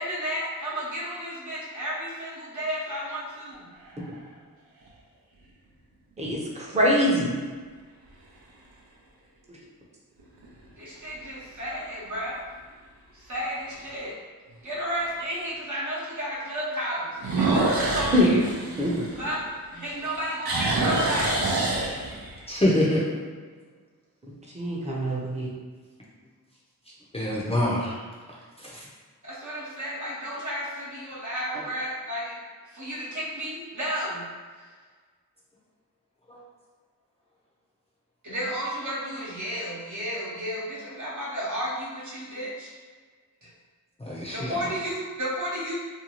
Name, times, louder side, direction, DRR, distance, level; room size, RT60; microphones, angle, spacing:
voice 1, 0.0-3.7 10.8-12.4 13.1-14.2 14.6-18.4 19.2-19.4 19.7-21.6 29.2-32.4 32.7-34.2 34.6-34.7 38.2-42.7 43.4-43.5 44.3-45.7, equal, 55° right, -7 dB, 0.9 m, -32 dB
sound 1, 3.5-4.2 4.9-5.0 10.2-10.7 11.1-11.2 11.8-11.9 12.1-12.2 13.7-13.8 17.2-19.7 20.0-22.4, right 2 dB, 85° right, 0.6 m, -26 dB
voice 2, 6.2-7.3 18.1-18.3 18.8-19.1 24.5-25.5, equal, 20° right, -4 dB, 0.7 m, -23 dB
voice 3, 22.5-23.0 27.1-28.0 28.6-28.8 36.3-36.4 44.0-44.5, left 1 dB, 15° left, -6 dB, 0.6 m, -25 dB
2.6 x 2.3 x 2.9 m, 1.5 s
wide cardioid pair, 70°, 36 cm